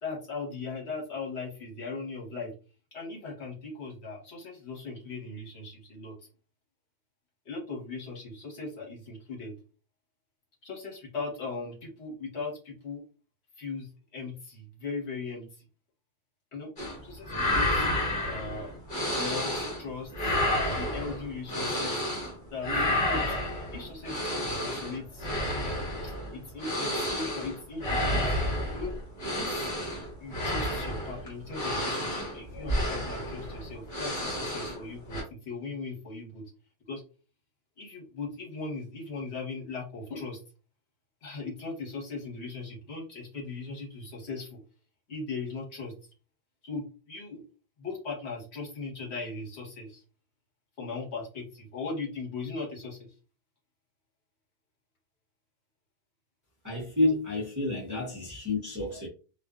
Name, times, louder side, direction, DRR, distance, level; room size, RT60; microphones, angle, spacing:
voice 1, 0.0-2.5 2.9-6.1 7.4-9.5 10.6-13.0 13.6-15.5 16.5-16.7 17.0-17.9 18.2-18.7 19.2-20.4 20.7-22.1 22.5-23.3 23.7-25.5 26.0-28.3 28.7-28.9 29.3-29.7 30.2-36.4 36.9-37.0 37.8-40.4 41.2-44.6 45.1-45.9 46.6-47.4 47.8-50.0 50.8-53.1, left 4 dB, 65° left, 1.3 m, -38 dB
sound 1, 16.8-17.0 17.2-19.8 20.1-22.3 22.6-34.8 35.1-35.2, left 1 dB, 45° left, 1.2 m, -30 dB
voice 2, 56.6-59.1, left 2 dB, 20° right, 0.6 m, -29 dB
2.5 x 2.3 x 2.3 m
omnidirectional pair, 1.3 m